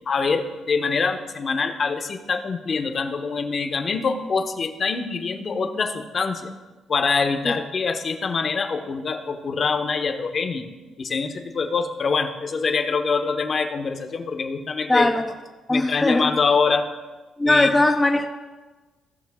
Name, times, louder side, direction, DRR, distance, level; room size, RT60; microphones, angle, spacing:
voice 1, 0.1-6.5 6.9-10.7 11.0-15.1 15.7-16.9 17.4-17.7, left 4 dB, 45° left, 1.0 m, -24 dB
voice 2, 14.9-15.3 15.7-16.3 17.4-18.3, left 2 dB, 15° left, 0.6 m, -19 dB
16.5 x 5.8 x 3.6 m
cardioid pair, 90°, 0 cm